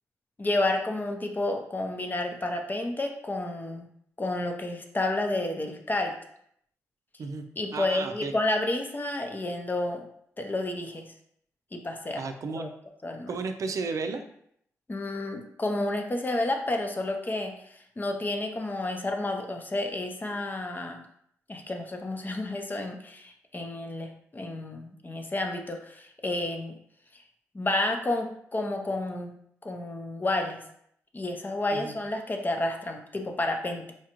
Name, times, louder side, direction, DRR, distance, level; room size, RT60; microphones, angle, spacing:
voice 1, 0.4-3.9 4.2-6.1 7.6-10.1 10.4-11.1 11.7-12.2 12.6-12.7 13.0-13.3 14.9-21.0 21.5-26.8 27.5-29.3 29.6-30.6 31.1-33.9, left 2 dB, 30° left, 3 dB, 0.7 m, -30 dB
voice 2, 7.7-8.3 12.2-12.7 13.3-14.2 31.7-31.9, right 4 dB, 60° right, 7 dB, 0.5 m, -33 dB
4.3 x 2.3 x 3.0 m, 0.69 s
supercardioid pair, 45°, 6 cm